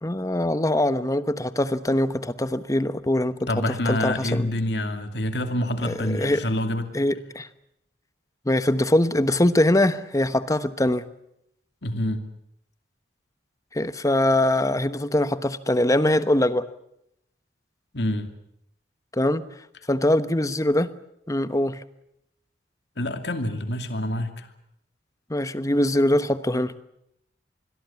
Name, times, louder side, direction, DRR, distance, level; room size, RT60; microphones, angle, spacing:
voice 1, 0.0-4.5 5.8-6.5 6.9-7.5 8.4-11.0 13.7-16.7 19.1-19.5 19.9-20.9 21.3-21.8 25.3-26.7, left 1 dB, 20° left, 13 dB, 1.2 m, -23 dB
voice 2, 3.5-6.9 11.8-12.2 17.9-18.3 23.0-24.5, left 1 dB, 65° left, 8 dB, 2.6 m, -26 dB
26.5 x 21.5 x 7.2 m, 0.77 s
head